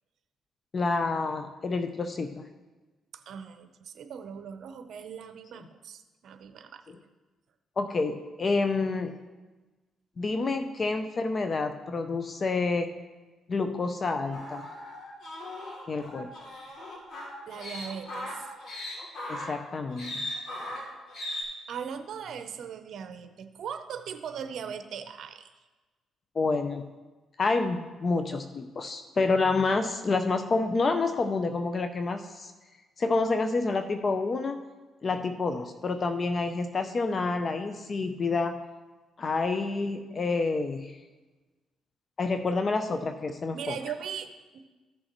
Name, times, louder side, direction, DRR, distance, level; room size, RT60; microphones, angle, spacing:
voice 1, 0.7-2.5 7.8-9.1 10.2-12.9 13.5-14.7 15.9-16.3 19.3-20.2 26.4-26.8 27.4-32.5 33.0-34.6 35.0-38.6 39.2-40.9 42.2-43.8, left 3 dB, 40° left, 8 dB, 0.5 m, -28 dB
voice 2, 3.1-6.9 17.5-18.5 21.7-25.5 43.5-44.6, right 7 dB, 65° right, 8 dB, 0.7 m, -39 dB
sound 1, 14.3-21.4, left 1 dB, 60° left, 2.7 m, -38 dB
14.5 x 6.3 x 3.1 m, 1.2 s
cardioid pair, 90°, 0 cm